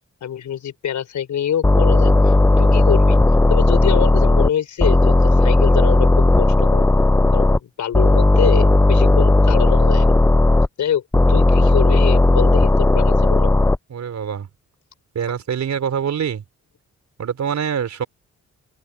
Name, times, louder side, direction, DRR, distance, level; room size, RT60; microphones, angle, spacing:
voice 1, 0.2-3.2 3.5-6.9 7.3-10.1 10.8-11.0 11.3-13.5, left 9 dB, 75° left, 4.9 m, -25 dB
sound 1, 1.6-4.5 4.8-7.6 7.9-10.7 11.1-13.8, left 2 dB, 10° left, 0.6 m, -14 dB
voice 2, 13.9-14.5 15.1-16.4 17.2-18.0, right 8 dB, 70° right, 4.5 m, -24 dB
open air
cardioid pair, 65°, 30 cm